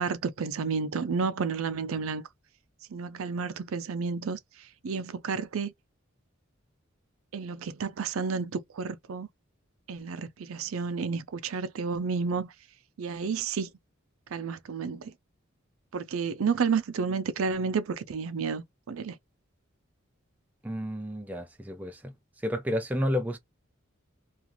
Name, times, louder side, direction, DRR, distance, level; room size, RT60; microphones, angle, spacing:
voice 1, 0.0-2.3 2.9-4.4 4.8-5.7 7.3-9.3 9.9-12.5 13.0-13.7 14.3-15.1 15.9-19.2, right 5 dB, 80° right, 0.5 m, -31 dB
voice 2, 20.6-22.1 22.4-23.4, equal, 5° right, 0.3 m, -31 dB
2.4 x 2.4 x 2.9 m
head